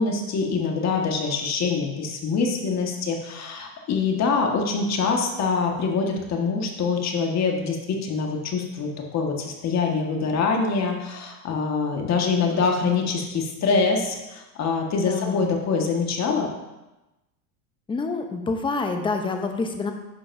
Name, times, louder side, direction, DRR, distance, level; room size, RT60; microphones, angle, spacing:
voice 1, 0.0-16.5, left 4 dB, 35° left, 2 dB, 1.6 m, -24 dB
voice 2, 15.0-15.5 17.9-19.9, left 3 dB, 10° left, 5 dB, 0.7 m, -27 dB
11.0 x 6.9 x 2.7 m, 1.0 s
supercardioid pair, 115°, 46 cm